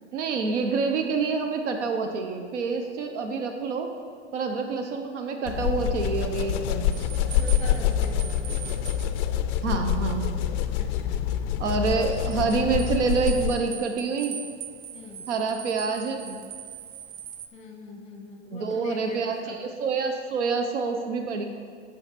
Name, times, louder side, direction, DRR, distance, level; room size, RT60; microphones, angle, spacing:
voice 1, 0.1-3.9 4.3-7.1 9.6-10.3 11.6-14.4 15.3-16.4 18.5-21.5, right 4 dB, 75° right, 5 dB, 0.9 m, -27 dB
sound 1, 5.5-13.7, left 10 dB, 40° left, 0.4 m, -26 dB
sound 2, 6.9-17.5, right 9 dB, 50° right, 0.6 m, -42 dB
voice 2, 7.2-8.6 10.8-11.3 14.9-15.3 17.5-19.6, left 2 dB, 20° left, 1 dB, 1.6 m, -40 dB
8.9 x 5.9 x 4.2 m, 2.1 s
hypercardioid pair, 125°, 36 cm